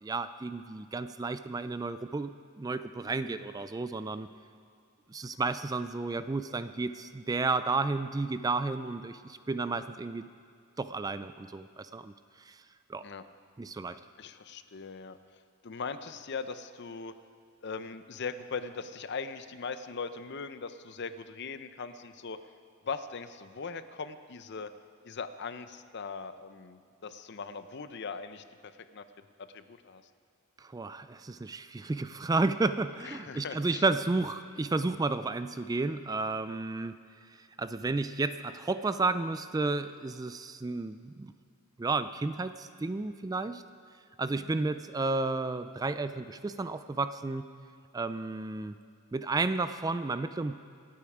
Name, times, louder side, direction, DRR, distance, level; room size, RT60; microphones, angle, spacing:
voice 1, 0.0-4.3 5.1-10.3 10.8-12.1 12.4-12.6 12.9-13.1 13.6-14.0 30.6-36.9 37.4-41.3 41.8-43.6 44.2-47.4 47.9-48.7 49.1-50.5, right 3 dB, 15° right, 11 dB, 0.3 m, -32 dB
voice 2, 14.2-15.2 15.6-17.1 17.6-22.4 22.8-24.7 25.0-29.1 29.4-30.0 33.0-33.8 44.3-44.5, left 5 dB, 55° left, 11 dB, 0.6 m, -40 dB
25.5 x 8.6 x 4.9 m, 2.2 s
head